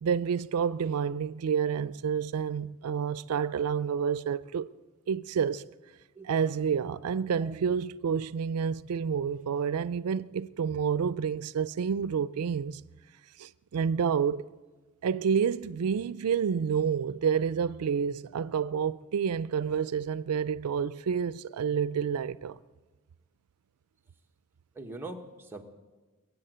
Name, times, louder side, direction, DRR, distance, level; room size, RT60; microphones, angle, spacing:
voice 1, 0.0-4.7 5.1-5.6 6.2-12.8 13.4-14.5 15.0-22.6, right 7 dB, 90° right, 0.4 m, -29 dB
voice 2, 6.2-6.7 7.4-7.6 24.7-25.6, right 2 dB, 10° right, 1.1 m, -43 dB
22.0 x 8.0 x 7.8 m
head